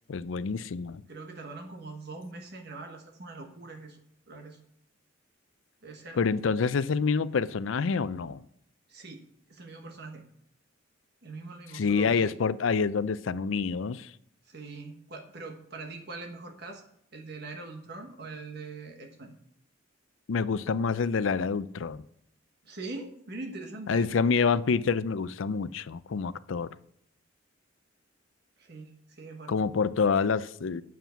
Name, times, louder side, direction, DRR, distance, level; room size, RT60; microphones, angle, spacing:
voice 1, 0.1-1.0 6.2-8.4 11.7-14.1 20.3-22.0 23.9-26.7 29.5-30.8, left 5 dB, 80° left, 0.5 m, -27 dB
voice 2, 1.1-4.6 5.8-6.2 8.9-10.2 11.2-12.4 14.4-16.8 17.1-19.3 22.6-24.1 28.6-29.6, right 3 dB, 55° right, 1.3 m, -42 dB
9.3 x 7.5 x 5.7 m
head